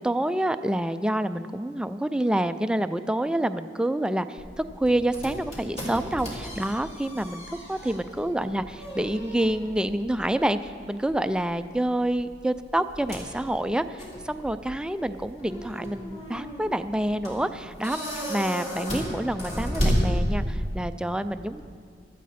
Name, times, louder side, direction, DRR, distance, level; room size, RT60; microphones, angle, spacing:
voice 1, 0.0-18.0 18.3-21.6, right 1 dB, 5° right, 11 dB, 0.3 m, -27 dB
sound 1, 4.4-20.7, equal, 35° left, 3.4 m, -33 dB
17.0 x 13.0 x 4.2 m, 2.2 s
head